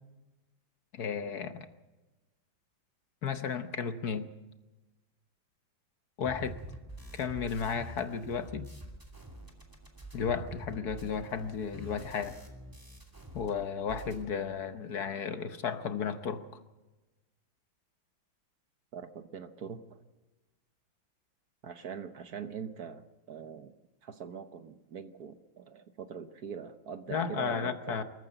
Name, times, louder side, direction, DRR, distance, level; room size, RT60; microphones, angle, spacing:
voice 1, 0.9-1.7 3.2-4.3 6.2-6.5 7.1-8.7 10.1-12.4 13.3-16.6 27.1-28.0, left 6 dB, 60° left, 9 dB, 1.4 m, -34 dB
sound 1, 6.2-13.5 13.8-14.2, equal, 10° right, 2.5 m, -46 dB
voice 2, 18.9-20.0 21.6-23.7 24.0-28.0, right 7 dB, 60° right, 9 dB, 1.3 m, -43 dB
23.0 x 14.5 x 8.0 m, 1.1 s
omnidirectional pair, 2.1 m